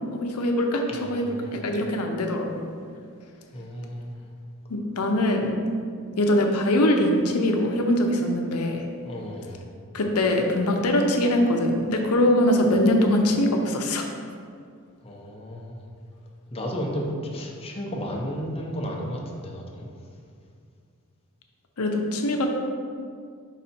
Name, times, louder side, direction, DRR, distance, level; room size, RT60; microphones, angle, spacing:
voice 1, 0.1-2.6 4.7-5.5 6.2-8.8 9.9-14.0 21.8-22.5, left 1 dB, 80° left, 3 dB, 0.7 m, -22 dB
voice 2, 0.9-1.6 3.5-4.1 9.0-9.6 15.0-15.8 16.5-17.1 17.3-19.9, equal, 25° left, -1 dB, 0.8 m, -33 dB
5.5 x 4.1 x 4.3 m, 2.2 s
head